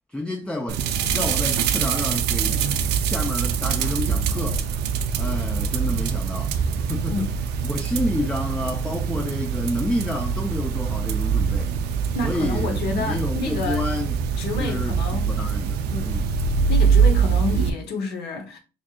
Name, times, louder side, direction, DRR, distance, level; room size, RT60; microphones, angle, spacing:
voice 1, 0.1-0.8 1.1-2.6 3.0-4.6 5.2-7.3 7.6-11.7 12.2-14.2 14.6-16.3, left 1 dB, 5° left, 0.4 m, -29 dB
sound 1, 0.7-17.7, right 6 dB, 80° right, 0.5 m, -24 dB
voice 2, 12.1-13.9 14.4-15.3 15.9-16.2 16.7-18.6, left 3 dB, 80° left, 0.9 m, -29 dB
4.6 x 2.7 x 2.3 m
cardioid pair, 110°, 17 cm